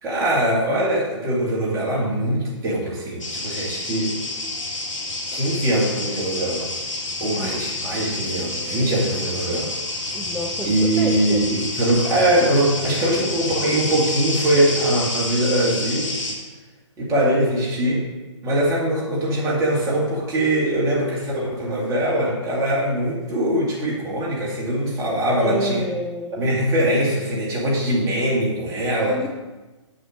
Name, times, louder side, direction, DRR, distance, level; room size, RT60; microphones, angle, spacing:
voice 1, 0.0-4.1 5.3-6.7 7.2-9.7 10.6-16.1 17.0-18.0 18.4-25.9 26.3-29.2, right 1 dB, 20° right, -4 dB, 2.4 m, -22 dB
sound 1, 3.2-16.3, left 2 dB, 85° left, 2.4 m, -29 dB
voice 2, 10.1-11.4 25.4-26.5 28.9-29.3, equal, ahead, -2 dB, 0.4 m, -30 dB
7.0 x 6.6 x 5.2 m, 1.2 s
hypercardioid pair, 140°, 16 cm